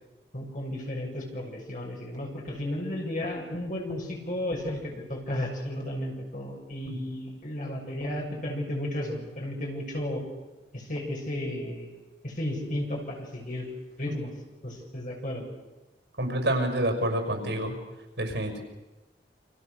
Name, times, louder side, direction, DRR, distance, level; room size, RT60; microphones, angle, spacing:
voice 1, 0.3-10.2 10.7-11.9 12.2-13.7 14.0-14.3 14.6-15.4, left 1 dB, 50° left, 0 dB, 7.2 m, -33 dB
voice 2, 16.2-17.7 18.2-18.6, right 1 dB, 80° right, 4 dB, 6.0 m, -27 dB
29.5 x 26.5 x 6.8 m, 1.1 s
head